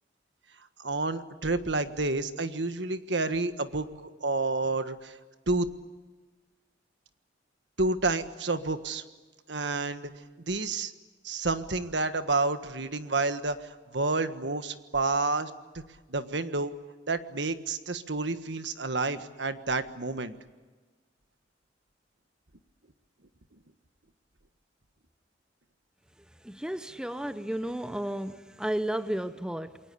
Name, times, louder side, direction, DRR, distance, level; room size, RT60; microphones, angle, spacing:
voice 1, 0.8-5.2 5.5-5.7 7.8-9.0 9.5-10.1 10.5-10.9 11.2-15.8 16.1-16.7 17.1-20.3, right 3 dB, 65° right, 1.5 m, -29 dB
voice 2, 26.4-29.8, right 1 dB, 5° right, 0.7 m, -33 dB
28.5 x 22.5 x 8.6 m
head